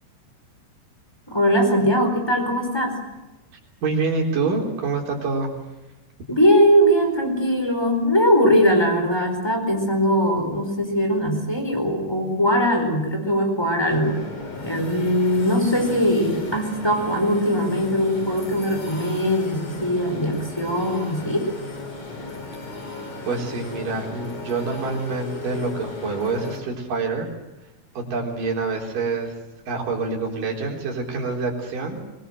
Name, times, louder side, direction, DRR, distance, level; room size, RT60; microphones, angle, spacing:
voice 1, 1.3-3.0 6.3-14.2 14.6-21.5, equal, 5° left, 4 dB, 4.3 m, -20 dB
voice 2, 3.8-5.5 23.3-27.3 28.0-29.3 29.7-32.0, right 4 dB, 60° right, 1 dB, 5.5 m, -26 dB
sound 1, 13.9-26.6, left 3 dB, 45° left, 4.9 m, -35 dB
23.5 x 20.5 x 7.8 m, 1.0 s
omnidirectional pair, 4.5 m